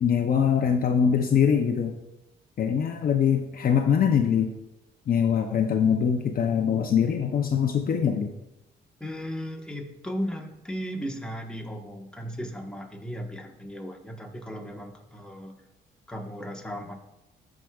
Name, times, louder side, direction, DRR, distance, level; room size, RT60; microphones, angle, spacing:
voice 1, 0.0-2.0 2.6-4.5 5.1-8.3, left 7 dB, 45° left, 4 dB, 0.6 m, -23 dB
voice 2, 9.0-15.5 16.1-16.9, equal, 5° left, 1 dB, 1.2 m, -36 dB
13.5 x 4.8 x 2.3 m, 0.93 s
cardioid pair, 90°, 20 cm